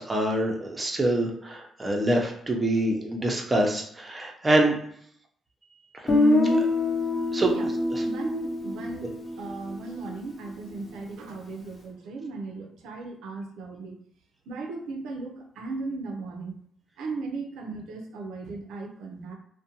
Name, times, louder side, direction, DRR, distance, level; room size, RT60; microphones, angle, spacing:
voice 1, 0.0-4.8 5.9-6.0 6.4-6.6 7.3-7.5 7.9-8.0, right 1 dB, 20° right, 1 dB, 0.6 m, -25 dB
Guitar, 6.1-10.0, left 2 dB, 35° left, 0.7 m, -25 dB
voice 2, 8.0-9.1 9.4-14.0 14.5-16.5 17.0-19.3, right 3 dB, 85° right, 2 dB, 0.5 m, -36 dB
2.5 x 2.2 x 2.7 m, 0.66 s
cardioid pair, 90°, 0 cm